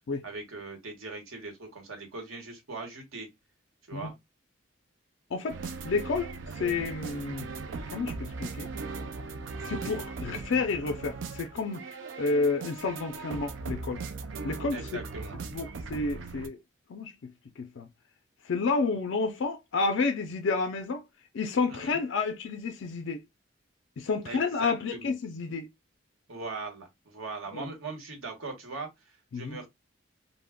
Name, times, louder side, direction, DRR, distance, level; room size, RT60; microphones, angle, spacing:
voice 1, 0.2-3.3 3.9-4.1 14.7-15.4 21.7-22.0 24.2-25.1 26.3-28.9 29.3-29.7, right 3 dB, 85° right, 1.0 m, -40 dB
sound 1, 5.5-16.5, right 4 dB, 70° right, 0.4 m, -39 dB
voice 2, 5.8-7.5 7.9-8.7 9.6-14.0 14.4-15.0 15.5-16.6 16.9-17.9 18.4-21.0 21.3-23.2 24.0-25.7 27.5-27.7 29.3-29.6, left 4 dB, 65° left, 0.4 m, -30 dB
2.2 x 2.0 x 3.4 m
head